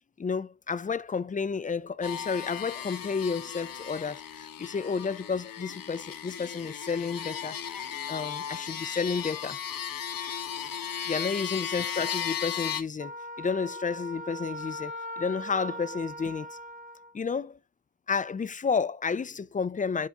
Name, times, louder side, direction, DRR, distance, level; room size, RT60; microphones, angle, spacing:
voice 1, 0.2-9.6 11.1-16.6 17.1-17.6 18.1-20.1, left 5 dB, 25° left, 0.4 m, -31 dB
sound 1, 2.0-12.8, left 8 dB, 80° left, 1.1 m, -36 dB
Wind instrument woodwind instrument, 13.0-17.1, equal, 25° right, 1.1 m, -40 dB
10.0 x 4.7 x 2.4 m
wide cardioid pair, 135°, 34 cm